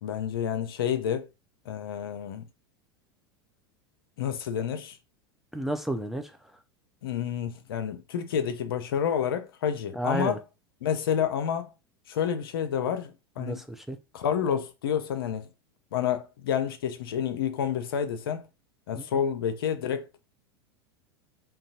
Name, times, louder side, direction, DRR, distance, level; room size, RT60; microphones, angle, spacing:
voice 1, 0.0-1.3 1.7-2.5 4.2-5.0 7.0-10.4 10.8-11.7 12.1-13.6 14.1-15.5 15.9-18.5 18.9-20.1, left 8 dB, 65° left, 0.5 m, -29 dB
voice 2, 5.5-6.4 9.9-10.4 13.4-14.0 19.0-19.1, right 1 dB, ahead, 0.4 m, -31 dB
3.8 x 2.2 x 2.4 m
figure-of-eight pair, 85°, 13 cm